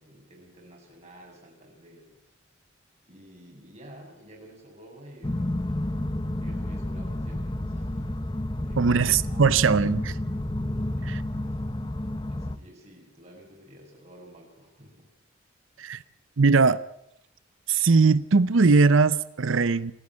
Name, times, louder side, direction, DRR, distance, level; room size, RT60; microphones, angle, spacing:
voice 1, 0.0-2.4 3.1-5.8 6.4-8.3 8.5-9.7 10.7-11.7 12.3-15.1 15.7-15.9, right 1 dB, 30° right, 6.9 m, -51 dB
sound 1, 5.2-12.6, left 1 dB, 20° left, 0.7 m, -30 dB
voice 2, 8.8-10.1 11.0-11.2 15.8-16.0 16.4-16.8 17.7-19.9, right 4 dB, 75° right, 0.6 m, -20 dB
28.0 x 9.7 x 9.7 m
head